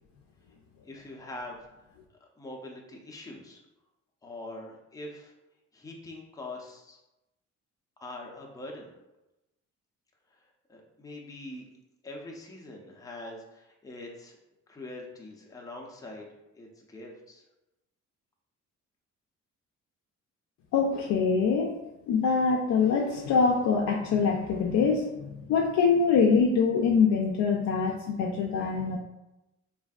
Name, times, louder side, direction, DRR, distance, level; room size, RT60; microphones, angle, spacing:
voice 1, 0.8-1.6 2.4-3.6 4.2-5.3 5.7-7.0 8.0-8.9 10.7-11.7 12.0-14.4 14.7-16.3 16.5-17.4, left 2 dB, 10° left, -1 dB, 0.6 m, -43 dB
voice 2, 20.7-21.7 22.1-29.0, left 5 dB, 70° left, 0 dB, 0.4 m, -24 dB
3.3 x 2.6 x 2.3 m, 0.94 s
cardioid pair, 90°, 30 cm